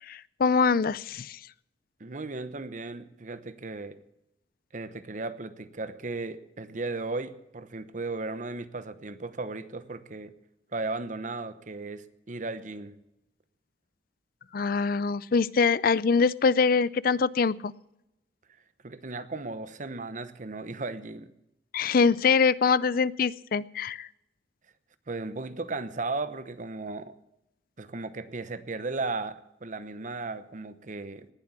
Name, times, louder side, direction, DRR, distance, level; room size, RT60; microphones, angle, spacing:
voice 1, 0.1-1.4 14.5-17.7 21.7-24.1, left 5 dB, 55° left, 20 dB, 0.4 m, -24 dB
voice 2, 2.0-4.0 4.7-10.3 10.7-13.0 18.8-21.3 25.1-27.1 27.8-31.3, right 3 dB, 45° right, 13 dB, 0.9 m, -36 dB
19.0 x 7.5 x 8.1 m, 0.87 s
head